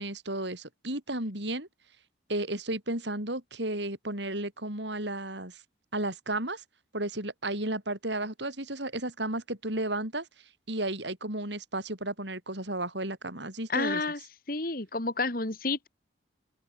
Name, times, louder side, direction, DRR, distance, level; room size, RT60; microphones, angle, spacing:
voice 1, 0.0-1.7 2.3-5.6 5.9-6.6 6.9-10.3 10.7-14.0, right 1 dB, 70° right, 7.9 m, -33 dB
voice 2, 13.7-14.2 14.5-15.9, left 3 dB, 50° left, 2.3 m, -30 dB
open air
head